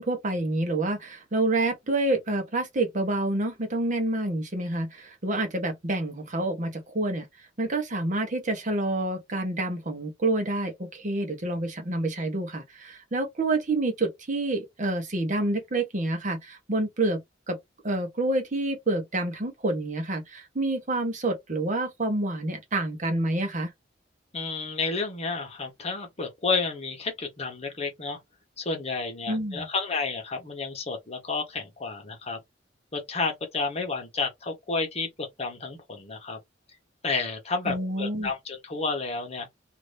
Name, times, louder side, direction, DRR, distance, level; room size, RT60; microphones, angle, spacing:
voice 1, 0.0-7.3 7.6-17.6 17.8-23.7 29.3-29.7 37.6-38.3, right 2 dB, 45° right, 0.9 m, -28 dB
voice 2, 24.3-28.2 28.6-32.4 32.9-36.4 37.0-39.5, left 4 dB, 35° left, 1.0 m, -31 dB
2.6 x 2.6 x 3.3 m
head